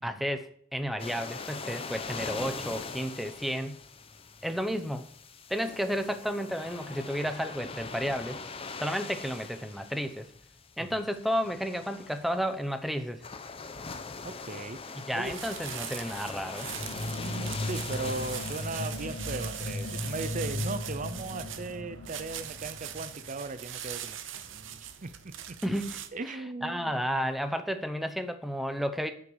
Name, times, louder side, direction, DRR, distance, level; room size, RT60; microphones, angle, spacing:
voice 1, 0.0-3.8 4.4-5.1 5.5-8.4 8.8-10.3 10.8-13.2 15.1-16.7 25.6-26.0 26.3-29.1, equal, ahead, 8 dB, 0.8 m, -32 dB
sound 1, 1.0-20.3, left 4 dB, 30° left, 0.8 m, -42 dB
voice 2, 14.2-15.4 17.1-25.1 25.5-25.6 26.1-26.9, right 3 dB, 40° right, 12 dB, 0.6 m, -38 dB
sound 2, 15.2-26.1, right 10 dB, 65° right, 0.9 m, -41 dB
sound 3, 16.6-23.4, left 1 dB, 60° left, 1.4 m, -37 dB
9.9 x 6.0 x 7.2 m, 0.63 s
head